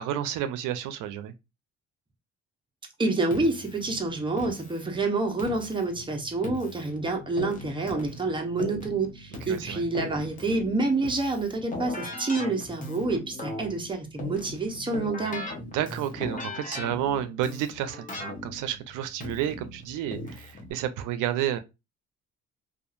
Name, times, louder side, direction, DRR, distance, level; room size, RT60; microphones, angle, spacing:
voice 1, 0.0-1.3 9.5-9.8 15.7-21.6, right 11 dB, 90° right, 0.5 m, -31 dB
voice 2, 3.0-15.4, right 3 dB, 15° right, 0.8 m, -28 dB
Keyboard (musical), 3.3-20.7, left 2 dB, 25° left, 0.9 m, -39 dB
2.6 x 2.4 x 2.4 m
cardioid pair, 90°, 30 cm